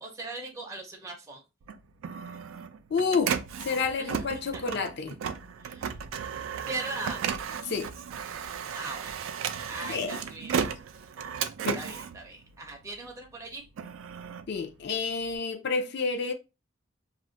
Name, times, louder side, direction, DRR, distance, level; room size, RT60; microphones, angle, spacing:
voice 1, 0.0-1.4 4.0-4.2 4.5-4.6 5.6-5.9 6.7-7.2 8.7-9.3 9.7-10.6 11.7-13.6, right 2 dB, 15° right, 0.5 m, -39 dB
Printer, 1.6-13.1 13.5-15.4, right 7 dB, 75° right, 0.3 m, -35 dB
voice 2, 2.9-3.4 3.6-5.2 7.6-7.9 9.9-10.2 10.6-10.7 11.6-11.8 14.5-16.3, left 4 dB, 55° left, 0.5 m, -29 dB
2.4 x 2.0 x 3.7 m
head